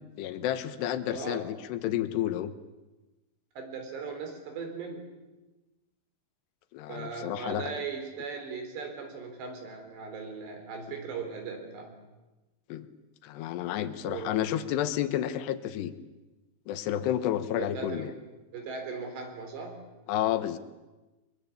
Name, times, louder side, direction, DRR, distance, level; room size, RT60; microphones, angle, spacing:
voice 1, 0.2-2.5 6.7-7.7 12.7-12.9 13.2-15.9 16.7-18.1 20.1-20.6, left 11 dB, 70° left, 11 dB, 3.0 m, -30 dB
voice 2, 1.1-1.5 3.6-5.1 6.9-12.0 14.0-14.5 17.6-18.1 18.5-19.8, right 5 dB, 65° right, 5 dB, 6.0 m, -38 dB
23.5 x 23.0 x 8.5 m, 1.1 s
omnidirectional pair, 5.5 m